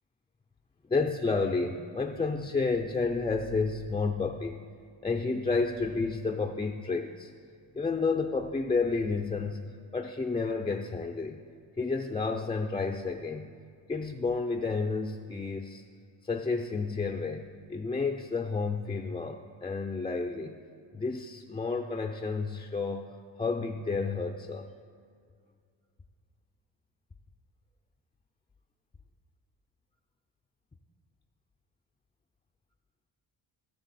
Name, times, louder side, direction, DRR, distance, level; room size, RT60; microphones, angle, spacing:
voice 1, 0.9-4.5 5.0-7.3 7.7-9.6 9.9-11.4 11.8-13.5 13.9-15.8 16.2-20.6 20.9-23.1 23.4-24.7, left 4 dB, 10° left, 3 dB, 0.4 m, -31 dB
16.5 x 6.7 x 4.2 m, 2.2 s
cardioid pair, 115°, 48 cm